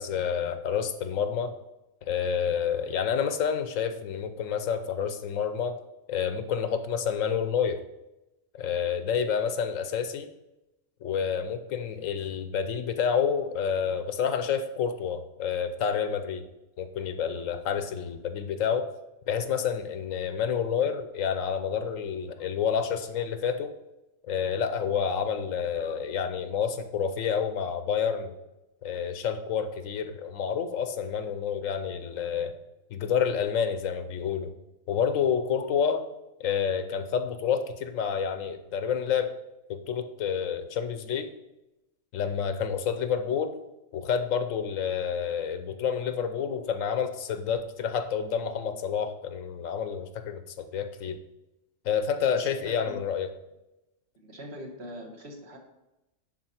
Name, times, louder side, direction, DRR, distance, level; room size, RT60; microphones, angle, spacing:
voice 1, 0.0-1.5 2.1-5.8 6.1-7.8 8.5-10.3 11.0-16.4 16.8-18.9 19.3-23.7 24.2-28.3 28.8-32.5 32.9-34.5 34.9-36.1 36.4-39.3 39.7-41.3 42.1-43.6 43.9-51.2 51.8-53.3, left 7 dB, 80° left, 9 dB, 1.1 m, -29 dB
voice 2, 52.3-53.0 54.2-55.6, equal, 55° right, 2 dB, 1.5 m, -42 dB
10.5 x 4.2 x 4.3 m, 0.96 s
omnidirectional pair, 1.3 m